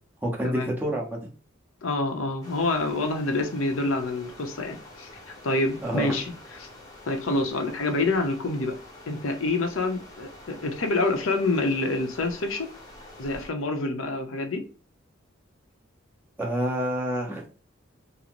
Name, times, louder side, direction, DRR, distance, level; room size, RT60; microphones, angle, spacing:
voice 1, 0.2-1.3 5.8-6.1 16.4-17.5, equal, 10° right, 0.9 m, -28 dB
voice 2, 1.8-5.1 5.4-6.3 6.6-6.7 7.1-8.8 9.1-12.7 13.2-14.6, left 2 dB, 85° left, 0.7 m, -27 dB
sound 1, 2.4-13.5, left 1 dB, 20° left, 0.9 m, -47 dB
3.8 x 2.0 x 2.9 m
head